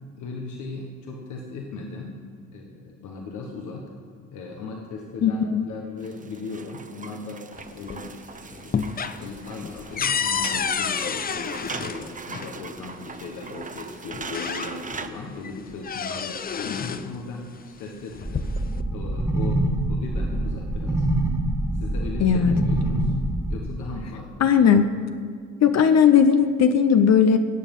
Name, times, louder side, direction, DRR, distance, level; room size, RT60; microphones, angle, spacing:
voice 1, 0.2-2.2 2.5-3.9 4.3-7.5 7.7-8.1 8.4-18.5 18.9-21.1 21.7-23.1 23.5-24.3, left 3 dB, 80° left, 0 dB, 1.4 m, -37 dB
voice 2, 5.2-5.7 22.2-22.6 24.4-24.9 25.6-27.4, left 7 dB, 60° left, 8 dB, 0.8 m, -17 dB
sound 1, 6.0-15.1, right 5 dB, 25° right, 0.7 m, -40 dB
sound 2, 7.6-8.2 8.5-12.5 13.6-13.7 14.1-15.1 15.4-17.1 18.0-18.8, left 6 dB, 30° left, 0.5 m, -29 dB
sound 3, 18.2-23.6, right 1 dB, 10° right, 1.8 m, -25 dB
18.5 x 7.4 x 5.4 m, 2.1 s
cardioid pair, 90°, 30 cm